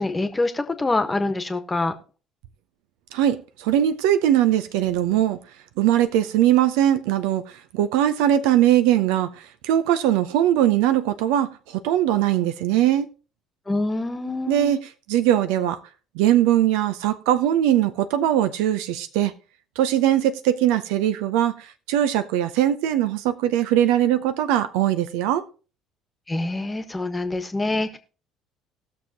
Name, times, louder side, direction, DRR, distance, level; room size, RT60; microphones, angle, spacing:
voice 1, 0.0-1.9 13.7-14.7 26.3-28.0, left 2 dB, 15° left, 1.4 m, -25 dB
voice 2, 3.1-5.4 5.8-13.1 14.5-14.8 15.1-15.8 16.1-19.3 19.8-25.4, right 11 dB, 65° right, 0.6 m, -21 dB
19.0 x 6.7 x 2.9 m
figure-of-eight pair, 55°, 0 cm